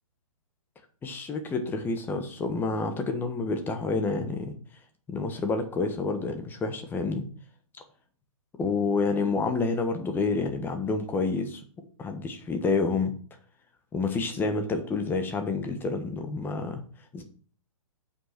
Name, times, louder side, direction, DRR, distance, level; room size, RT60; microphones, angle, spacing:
voice 1, 1.0-4.5 5.1-7.2 8.6-11.6 12.0-13.1 13.9-16.8 17.1-17.2, left 4 dB, 10° left, 6 dB, 1.5 m, -28 dB
7.9 x 5.6 x 6.0 m, 0.43 s
hypercardioid pair, 140°, 18 cm